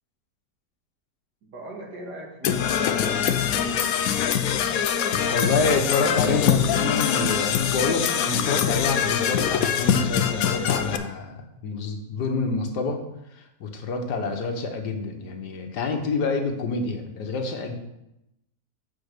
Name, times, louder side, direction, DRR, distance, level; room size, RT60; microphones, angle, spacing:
voice 1, 1.4-3.8, right 1 dB, 90° right, 0 dB, 2.3 m, -40 dB
Percussion / Brass instrument, 2.4-11.0, left 8 dB, 70° left, 1.0 m, -23 dB
voice 2, 5.1-13.0 13.3-17.7, left 3 dB, 85° left, 4 dB, 1.7 m, -27 dB
7.0 x 5.1 x 6.6 m, 0.87 s
omnidirectional pair, 1.7 m